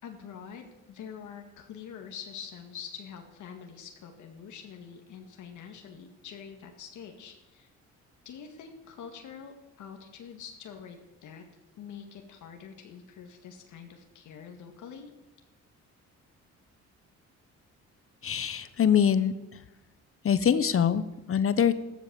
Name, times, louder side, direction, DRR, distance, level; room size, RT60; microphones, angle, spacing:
voice 1, 0.0-7.7 8.3-11.4 11.8-15.1, left 7 dB, 80° left, 3 dB, 2.1 m, -45 dB
voice 2, 18.2-19.6 20.2-21.7, left 8 dB, 45° left, 13 dB, 1.0 m, -24 dB
14.5 x 13.0 x 7.0 m, 1.0 s
cardioid pair, 90°, 30 cm